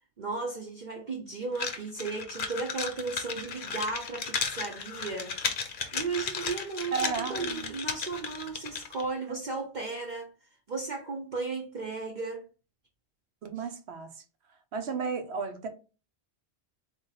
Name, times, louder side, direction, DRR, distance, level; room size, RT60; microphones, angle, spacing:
voice 1, 0.2-5.4 5.9-10.3 10.7-12.4 13.6-13.7, right 4 dB, 45° right, 0.8 m, -35 dB
sound 1, 1.5-9.0, left 5 dB, 50° left, 0.8 m, -35 dB
voice 2, 6.9-7.7 9.3-9.4 13.4-14.1 14.7-15.7, right 5 dB, 70° right, 1.0 m, -33 dB
3.9 x 3.1 x 4.0 m
omnidirectional pair, 1.2 m